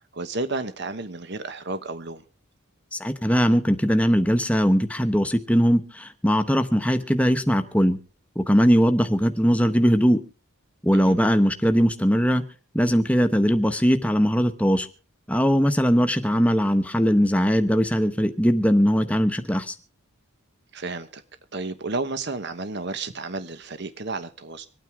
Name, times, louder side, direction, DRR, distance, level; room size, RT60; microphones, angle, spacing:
voice 1, 0.1-2.2 10.9-11.1 20.7-21.2 21.5-24.7, right 3 dB, 50° right, 11 dB, 1.2 m, -32 dB
voice 2, 2.9-8.0 8.3-10.2 10.8-12.4 12.7-14.9 15.3-19.7, equal, 5° left, 8 dB, 1.1 m, -20 dB
25.5 x 9.2 x 3.6 m, 0.37 s
head